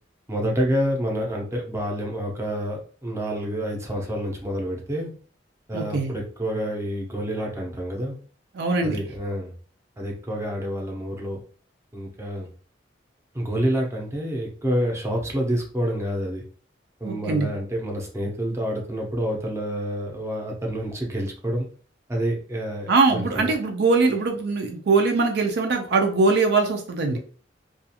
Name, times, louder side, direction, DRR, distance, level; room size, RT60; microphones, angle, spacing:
voice 1, 0.3-5.1 5.7-8.2 8.8-9.5 10.0-11.4 11.9-12.5 13.3-16.4 17.0-21.7 22.1-23.5, equal, 15° right, -1 dB, 0.6 m, -28 dB
voice 2, 5.7-6.1 8.5-9.0 17.0-17.5 22.9-27.2, right 3 dB, 65° right, 3 dB, 0.4 m, -22 dB
2.4 x 2.4 x 2.7 m, 0.42 s
head